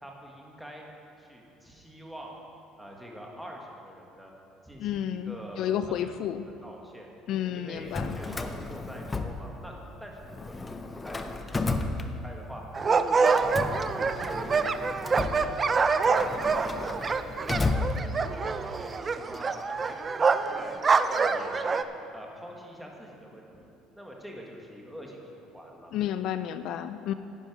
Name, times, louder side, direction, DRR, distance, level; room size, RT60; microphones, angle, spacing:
voice 1, 0.0-0.9 1.2-2.3 2.8-4.3 4.6-6.2 6.6-7.1 7.5-12.6 13.1-14.8 15.1-19.0 19.3-20.0 20.2-20.8 21.1-21.8 22.1-23.7 24.0-25.9, equal, ahead, -1 dB, 1.6 m, -45 dB
voice 2, 4.8-6.4 7.3-8.2 25.9-27.1, left 10 dB, 60° left, 11 dB, 0.4 m, -31 dB
Drawer open or close, 7.8-9.9 10.2-12.6 13.3-18.5, left 3 dB, 15° left, 0.6 m, -33 dB
sound 1, 12.7-21.8, right 4 dB, 25° right, 0.4 m, -26 dB
11.0 x 10.0 x 4.9 m, 2.7 s
cardioid pair, 125°, 0 cm